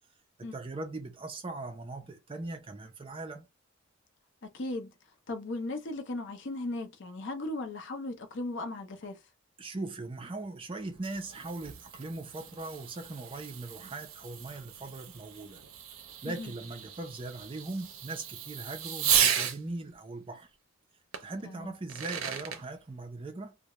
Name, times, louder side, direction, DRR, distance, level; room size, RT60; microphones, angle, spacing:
voice 1, 0.4-3.5 9.6-15.6 16.2-20.5 21.2-23.6, right 2 dB, 25° right, 0.4 m, -40 dB
voice 2, 4.4-4.9 5.3-9.2 16.2-16.5 21.4-21.7, left 2 dB, 60° left, 0.5 m, -37 dB
Fireworks, 10.8-19.6 21.1-21.2 21.7-22.6, right 9 dB, 80° right, 0.5 m, -34 dB
2.3 x 2.0 x 2.9 m
head